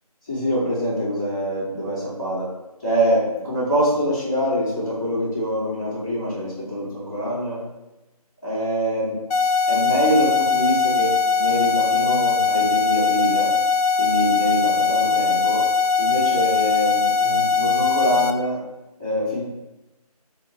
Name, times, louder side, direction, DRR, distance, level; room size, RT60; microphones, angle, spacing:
voice 1, 0.2-2.5 2.8-7.6 8.4-9.2 9.7-13.5 14.0-15.6 16.0-18.6 19.0-19.4, equal, 5° left, -18 dB, 0.8 m, -24 dB
sound 1, 9.3-18.3, left 5 dB, 70° left, 0.4 m, -20 dB
2.7 x 2.5 x 3.9 m, 1.0 s
figure-of-eight pair, 170°, 20 cm